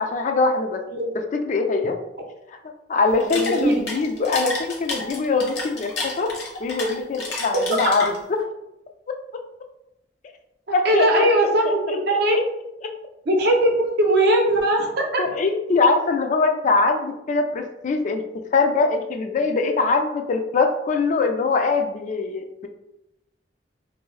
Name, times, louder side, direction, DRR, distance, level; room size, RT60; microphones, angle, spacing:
voice 1, 0.0-0.8 1.1-2.0 2.5-2.6 2.9-6.3 6.6-8.2 10.7-12.0 15.2-18.2 18.5-22.7, left 3 dB, 45° left, 5 dB, 0.3 m, -22 dB
sound 1, 3.1-8.4, left 2 dB, 60° left, 0.8 m, -31 dB
voice 2, 3.3-3.8 10.8-12.5 13.3-15.2, right 1 dB, 65° right, 1 dB, 0.6 m, -20 dB
2.6 x 2.6 x 3.1 m, 0.87 s
head